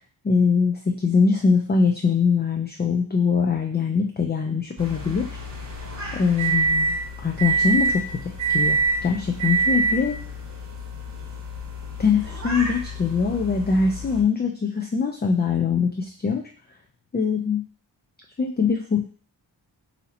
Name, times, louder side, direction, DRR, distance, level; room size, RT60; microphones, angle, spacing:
voice 1, 0.2-5.4 6.1-10.2 12.0-16.5 17.1-17.6 18.4-19.0, left 5 dB, 25° left, 2 dB, 0.4 m, -22 dB
sound 1, 4.8-14.2, right 3 dB, 40° right, 1.1 m, -26 dB
4.1 x 2.7 x 4.1 m, 0.44 s
wide cardioid pair, 85°, 46 cm